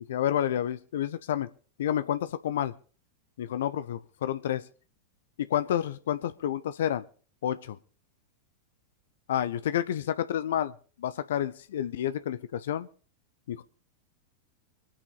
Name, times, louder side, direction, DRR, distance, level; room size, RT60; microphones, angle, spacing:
voice 1, 0.1-1.5 1.8-2.7 3.4-4.6 5.4-7.0 7.4-7.8 9.3-10.7 11.0-12.9 13.5-13.6, left 10 dB, 60° left, 0.7 m, -29 dB
24.5 x 8.8 x 4.0 m
figure-of-eight pair, 90°, 0 cm